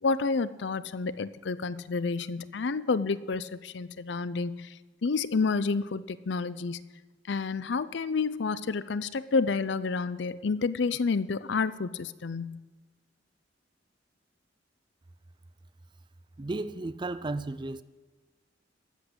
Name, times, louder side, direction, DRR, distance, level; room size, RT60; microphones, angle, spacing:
voice 1, 0.0-6.8 7.3-12.6, left 4 dB, 70° left, 0.5 m, -29 dB
voice 2, 16.4-17.8, right 2 dB, 25° right, 0.4 m, -34 dB
13.0 x 8.4 x 7.9 m
head